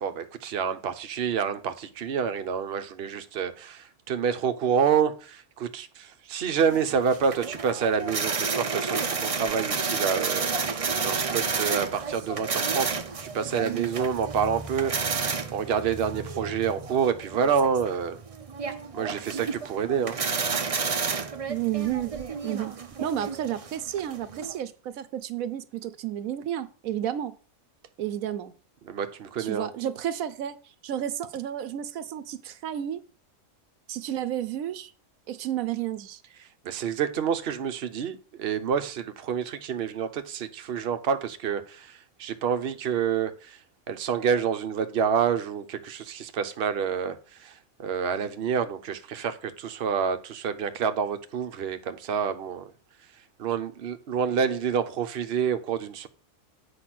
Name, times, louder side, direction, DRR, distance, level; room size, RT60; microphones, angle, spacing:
voice 1, 0.0-18.2 18.9-20.2 28.8-29.7 36.6-43.6 43.9-52.7 53.4-56.1, right 7 dB, 50° right, 1.0 m, -28 dB
sound 1, 6.7-24.6, right 5 dB, 35° right, 0.6 m, -31 dB
voice 2, 21.5-22.2 22.4-22.7 23.0-27.3 28.0-28.5 29.4-30.6 30.8-33.0 33.9-34.9 35.3-36.2, right 11 dB, 80° right, 1.1 m, -31 dB
8.3 x 5.3 x 6.0 m
omnidirectional pair, 1.4 m